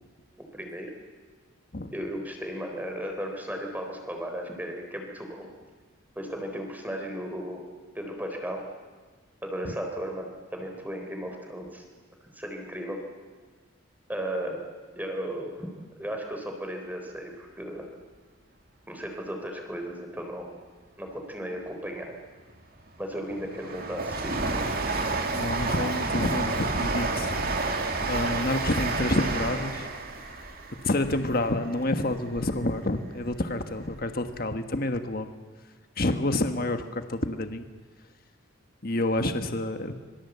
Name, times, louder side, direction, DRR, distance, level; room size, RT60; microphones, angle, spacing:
voice 1, 0.5-0.9 1.9-5.5 6.2-7.7 7.9-8.7 9.4-11.8 12.3-13.0 14.1-14.6 15.0-15.7 16.0-17.9 18.9-20.5 21.0-22.2 23.0-24.4, equal, 10° right, 3 dB, 3.7 m, -35 dB
Train, 22.6-32.8 33.2-34.1 34.3-34.4, right 3 dB, 45° right, 2.4 m, -30 dB
voice 2, 25.3-27.4 28.0-29.9 30.8-35.3 36.0-37.7 38.8-40.1, left 1 dB, 45° left, 7 dB, 1.4 m, -28 dB
26.0 x 23.5 x 8.1 m, 1.4 s
head